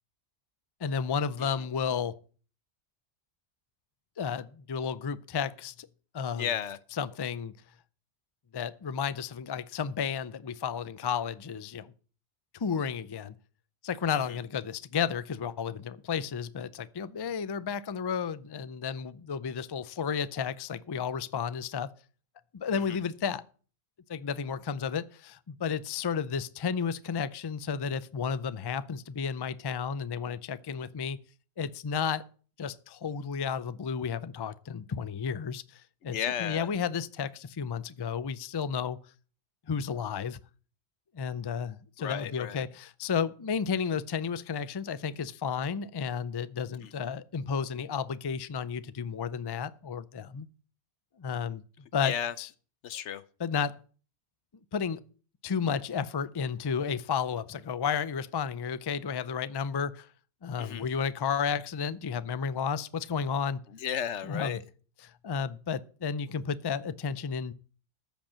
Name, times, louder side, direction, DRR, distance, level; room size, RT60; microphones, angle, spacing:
voice 1, 0.8-2.1 4.2-5.9 6.1-6.5 7.0-7.5 8.5-11.9 12.6-13.3 13.8-21.9 22.5-23.4 24.1-31.2 31.6-32.2 32.6-39.0 39.7-40.4 41.1-50.5 51.2-51.6 51.9-52.5 53.4-53.7 54.7-55.0 55.4-60.1 60.4-63.6 64.2-64.6 65.2-67.5, left 6 dB, 40° left, 0.3 m, -32 dB
voice 2, 6.4-6.8 14.3-14.4 22.7-23.0 36.0-36.7 42.0-42.6 46.8-46.9 52.0-52.3 52.8-53.2 60.6-60.8 63.7-64.6, left 9 dB, 85° left, 1.1 m, -34 dB
14.0 x 5.3 x 7.3 m
omnidirectional pair, 1.2 m